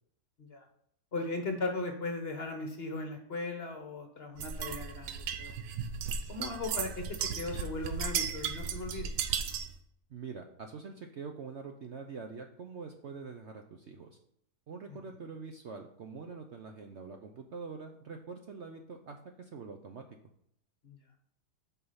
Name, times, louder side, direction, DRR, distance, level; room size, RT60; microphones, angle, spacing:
voice 1, 1.1-5.5 6.3-9.1 20.8-21.0, left 2 dB, 45° left, 4 dB, 1.1 m, -37 dB
sound 1, 4.4-9.8, right 7 dB, 85° right, 1.3 m, -35 dB
voice 2, 10.1-14.2 14.7-20.0, right 5 dB, 55° right, 4 dB, 0.8 m, -45 dB
8.3 x 4.8 x 5.6 m, 0.71 s
omnidirectional pair, 1.8 m